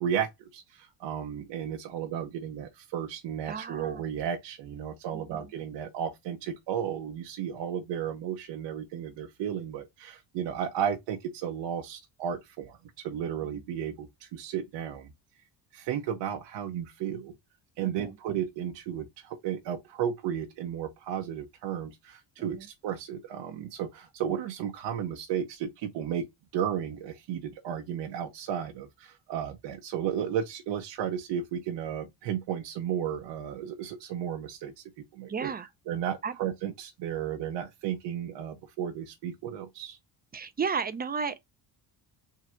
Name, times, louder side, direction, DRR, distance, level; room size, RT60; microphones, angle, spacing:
voice 1, 0.0-12.8 13.0-15.1 15.7-17.3 17.8-22.6 22.8-26.2 26.5-34.7 35.1-35.5 35.9-40.0, right 9 dB, 70° right, 0.8 m, -33 dB
voice 2, 3.5-4.0 5.1-5.5 13.5-13.6 17.8-18.2 22.4-22.7 35.2-35.7 36.2-36.4 40.3-41.4, right 5 dB, 25° right, 0.4 m, -34 dB
3.7 x 2.4 x 4.3 m
cardioid pair, 110°, 43 cm